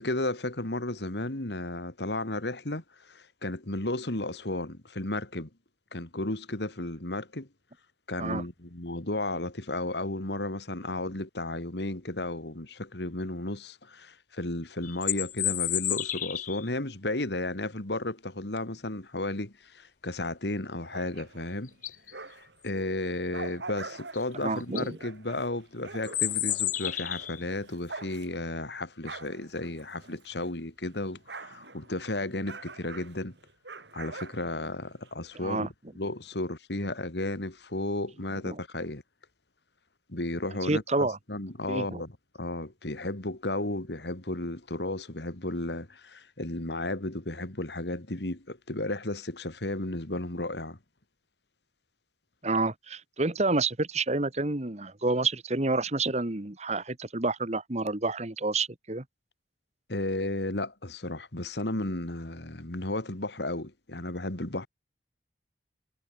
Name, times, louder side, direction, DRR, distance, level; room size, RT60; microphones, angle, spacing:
voice 1, 0.0-5.5 5.9-7.5 8.1-21.7 22.3-33.3 33.9-35.7 36.0-39.0 40.1-42.1 42.4-50.8 59.9-64.7, left 2 dB, 75° left, 2.7 m, -33 dB
sound 1, 14.8-16.7 21.2-21.3 21.7-22.1 24.1-24.2 24.6-24.9 26.0-27.4, left 13 dB, 45° left, 0.6 m, -30 dB
sound 2, 20.8-22.6 23.0-30.6 30.9-35.1, right 3 dB, 90° right, 5.7 m, -45 dB
voice 2, 24.4-25.0 35.3-35.7 38.5-38.6 40.6-41.2 41.7-42.0 52.4-59.0, right 3 dB, 40° right, 1.5 m, -29 dB
head